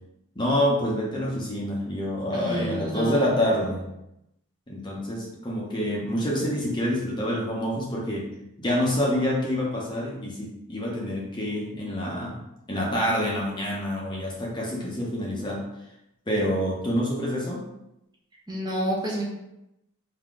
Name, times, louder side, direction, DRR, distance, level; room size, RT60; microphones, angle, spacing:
voice 1, 0.4-3.9 4.7-8.3 8.6-12.4 12.7-15.6 16.3-17.6, equal, 20° left, -3 dB, 0.8 m, -27 dB
voice 2, 2.3-3.4 18.5-19.2, equal, 20° right, -4 dB, 0.9 m, -29 dB
3.9 x 2.8 x 4.8 m, 0.87 s
head